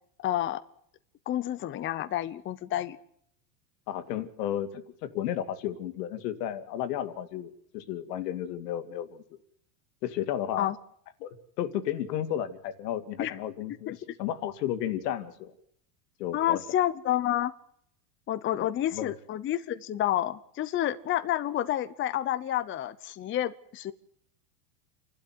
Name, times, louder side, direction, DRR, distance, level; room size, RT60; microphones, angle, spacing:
voice 1, 0.2-0.6 1.3-3.0 10.6-10.7 13.2-13.4 13.9-14.0 16.3-17.5 18.3-23.9, left 12 dB, 25° left, 14 dB, 0.9 m, -29 dB
voice 2, 3.9-9.2 10.0-10.7 11.2-15.5 16.2-16.6 18.6-19.1, left 11 dB, 75° left, 11 dB, 2.7 m, -33 dB
29.0 x 12.5 x 9.7 m, 0.70 s
supercardioid pair, 145°, 48 cm